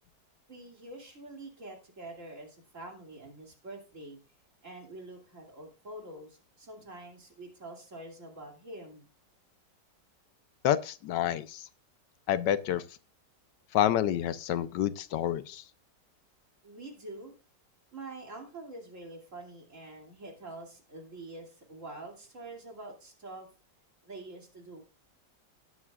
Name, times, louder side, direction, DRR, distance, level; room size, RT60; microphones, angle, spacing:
voice 1, 0.5-4.2 4.6-9.1 16.6-17.3 17.9-23.5 24.0-24.8, right 2 dB, 45° right, 1 dB, 3.1 m, -46 dB
voice 2, 10.6-11.7 12.3-12.8 13.7-15.6, left 11 dB, 80° left, 14 dB, 1.3 m, -28 dB
19.0 x 7.3 x 2.4 m, 0.32 s
omnidirectional pair, 1.9 m